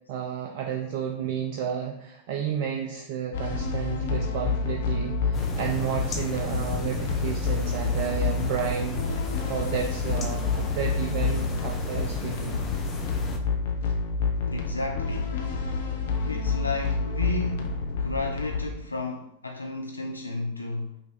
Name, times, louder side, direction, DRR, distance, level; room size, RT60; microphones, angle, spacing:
voice 1, 0.1-9.0 9.5-12.6, right 8 dB, 50° right, 0.4 m, -31 dB
sound 1, 3.3-18.7, left 4 dB, 55° left, 0.7 m, -28 dB
sound 2, 5.3-13.4, left 2 dB, 25° left, 0.7 m, -35 dB
voice 2, 14.4-15.4 16.2-21.0, left 2 dB, 80° left, 0.3 m, -33 dB
5.6 x 2.7 x 3.1 m
figure-of-eight pair, 90°, 0 cm